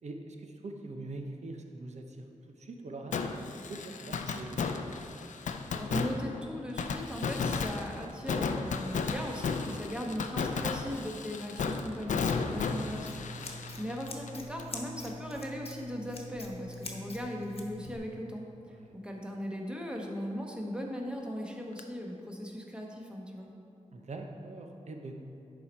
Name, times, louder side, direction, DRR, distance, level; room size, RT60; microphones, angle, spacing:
voice 1, 0.0-2.3 2.6-4.7 12.5-12.8 18.7-18.9 23.9-25.2, right 2 dB, 65° right, 3 dB, 0.8 m, -43 dB
Fireworks, 3.1-14.8 15.1-15.2 21.8-21.9, left 5 dB, 80° left, 0.5 m, -34 dB
voice 2, 5.7-13.1 13.4-18.4 18.9-23.5, equal, 5° right, 0 dB, 1.1 m, -38 dB
Scissors, 12.6-18.0, left 1 dB, 50° left, 1.1 m, -44 dB
11.0 x 4.3 x 4.3 m, 2.9 s
wide cardioid pair, 85°, 13 cm